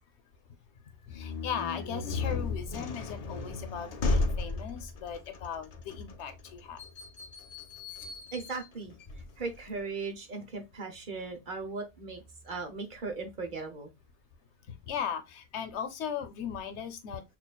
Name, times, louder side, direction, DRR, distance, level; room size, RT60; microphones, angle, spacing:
voice 1, 1.1-6.8 14.9-17.2, left 7 dB, 85° left, 1.0 m, -38 dB
sound 1, 1.1-9.8, left 3 dB, 50° left, 0.5 m, -35 dB
voice 2, 8.3-8.9 9.4-13.9, right 4 dB, 50° right, 1.0 m, -38 dB
6.0 x 2.4 x 2.2 m
omnidirectional pair, 1.1 m